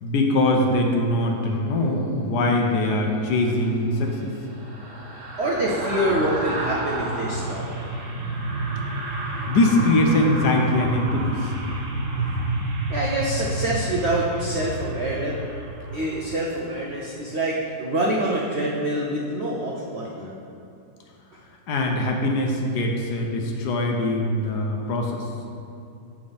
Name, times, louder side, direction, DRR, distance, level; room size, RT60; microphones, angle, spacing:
voice 1, 0.0-4.3 9.5-11.3 21.7-25.2, left 1 dB, 70° left, 1 dB, 1.2 m, -22 dB
sound 1, 3.4-16.7 17.1-17.3, right 2 dB, 45° right, 1.4 m, -30 dB
voice 2, 5.4-7.7 12.9-15.4 15.9-20.4, right 1 dB, 80° right, -3 dB, 0.6 m, -26 dB
7.4 x 6.1 x 3.4 m, 2.7 s
omnidirectional pair, 2.0 m